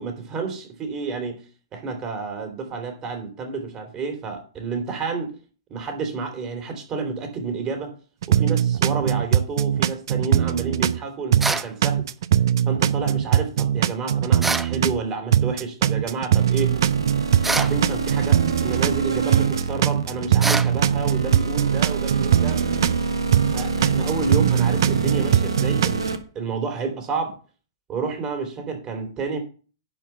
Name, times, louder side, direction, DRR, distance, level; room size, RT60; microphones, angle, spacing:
voice 1, 0.0-1.4 1.7-5.3 5.7-7.9 8.3-12.0 12.7-16.7 17.5-22.6 23.5-27.4 27.9-29.4, right 4 dB, 25° right, 5 dB, 3.2 m, -30 dB
sound 1, 8.2-11.0 11.3-15.0 15.3-19.0 19.3-23.0 23.3-26.1, right 10 dB, 60° right, 0.6 m, -21 dB
sound 2, 11.4-11.7 14.4-14.7 17.4-17.8 20.4-20.7, right 2 dB, 5° right, 0.6 m, -24 dB
sound 3, 16.4-26.2, right 4 dB, 80° right, 1.5 m, -27 dB
11.0 x 4.7 x 6.9 m, 0.37 s
figure-of-eight pair, 110°, 3 cm